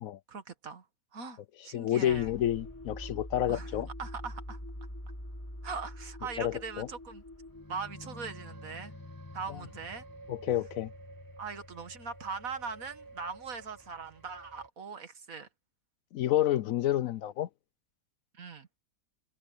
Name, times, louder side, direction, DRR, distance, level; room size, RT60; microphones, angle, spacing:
voice 1, 0.3-0.8 1.1-2.3 3.5-3.7 4.0-4.6 5.6-7.2 7.7-8.9 9.3-10.0 11.4-15.5 18.4-18.7, right 5 dB, 60° right, 2.0 m, -40 dB
voice 2, 1.7-3.9 6.4-6.9 9.5-9.6 10.3-10.9 16.1-17.5, left 12 dB, 70° left, 0.9 m, -29 dB
sound 1, 2.1-14.7, equal, 15° left, 2.5 m, -46 dB
omnidirectional pair, 1.6 m